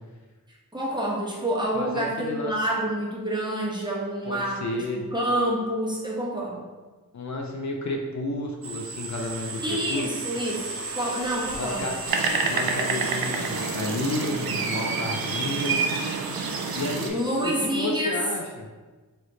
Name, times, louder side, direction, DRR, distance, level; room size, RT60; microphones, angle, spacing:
voice 1, 0.7-4.8 5.1-6.6 9.6-11.9 17.1-18.1, right 1 dB, 15° right, -5 dB, 1.1 m, -28 dB
voice 2, 1.7-2.5 4.3-5.0 7.1-10.1 11.5-12.0 12.5-15.8 16.7-18.7, left 2 dB, 55° left, 1 dB, 0.5 m, -31 dB
sound 1, 8.6-17.7, right 3 dB, 40° right, 0.7 m, -36 dB
sound 2, 12.1-17.1, right 4 dB, 85° right, 0.5 m, -27 dB
3.3 x 3.0 x 3.9 m, 1.3 s
wide cardioid pair, 60°, 35 cm